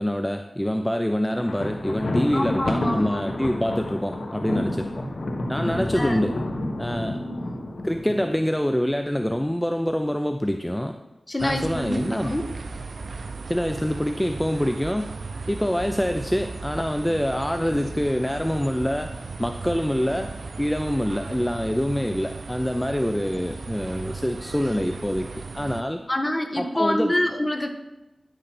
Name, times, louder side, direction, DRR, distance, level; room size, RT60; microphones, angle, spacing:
voice 1, 0.0-5.1 5.5-6.4 6.8-7.2 7.8-11.0 11.4-12.3 13.5-15.1 15.5-20.3 20.6-26.0 26.6-27.1, equal, 10° left, 6 dB, 0.5 m, -25 dB
Thunder, 1.3-8.5, left 1 dB, 75° left, 1.3 m, -30 dB
voice 2, 2.3-3.5 5.9-6.2 7.2-7.7 11.3-12.5 26.1-27.7, left 1 dB, 25° left, 5 dB, 1.3 m, -27 dB
sound 1, 11.4-25.8, right 4 dB, 80° right, 0.6 m, -36 dB
10.0 x 6.6 x 6.0 m, 1.0 s
wide cardioid pair, 65°, 0 cm